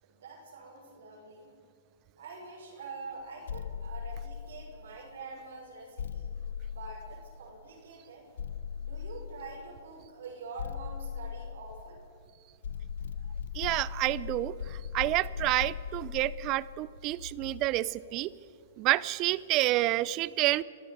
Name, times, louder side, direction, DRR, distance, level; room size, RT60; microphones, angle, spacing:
voice 1, 0.0-1.5 2.2-6.3 6.7-8.3 8.8-12.0, right 3 dB, 75° right, -1 dB, 6.1 m, -45 dB
sound 1, 3.5-5.0 6.0-7.6 8.4-9.7 10.6-12.2 12.6-17.9, left 7 dB, 75° left, 1.1 m, -39 dB
voice 2, 13.5-14.5 14.9-18.3 18.8-20.6, right 17 dB, 35° right, 19 dB, 0.6 m, -28 dB
24.5 x 14.0 x 8.0 m, 2.3 s
hypercardioid pair, 125°, 0 cm